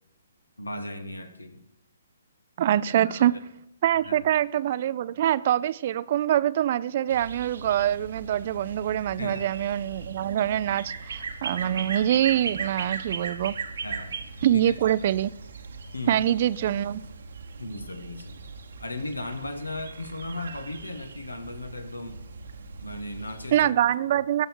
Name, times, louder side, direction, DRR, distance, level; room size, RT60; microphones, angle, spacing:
voice 1, 0.6-1.6 2.8-3.4 4.0-4.2 9.2-9.4 13.8-14.1 14.5-14.7 15.9-16.2 17.6-18.5 18.8-22.2 22.8-23.7, left 2 dB, 90° left, 1.3 m, -36 dB
voice 2, 2.6-3.3 3.8-13.6 14.4-15.3 16.1-17.0 23.5-24.5, right 11 dB, 45° right, 0.4 m, -24 dB
sound 1, 7.1-23.6, right 5 dB, 65° right, 1.1 m, -39 dB
17.5 x 6.4 x 4.5 m
figure-of-eight pair, 135°, 0 cm